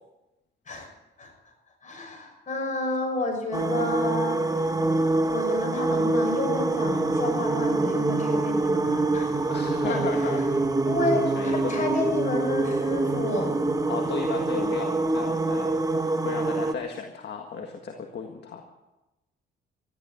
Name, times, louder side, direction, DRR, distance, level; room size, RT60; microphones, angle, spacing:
voice 1, 1.8-4.7 5.3-9.4 9.8-10.0 10.8-13.5, left 2 dB, 40° left, 2 dB, 6.2 m, -30 dB
sound 1, 3.5-16.7, right 2 dB, 15° right, 1.4 m, -25 dB
voice 2, 9.5-10.8 11.1-11.9 13.9-18.6, left 5 dB, 60° left, 3 dB, 1.8 m, -35 dB
14.0 x 12.0 x 8.6 m, 1.0 s
cardioid pair, 90°, 20 cm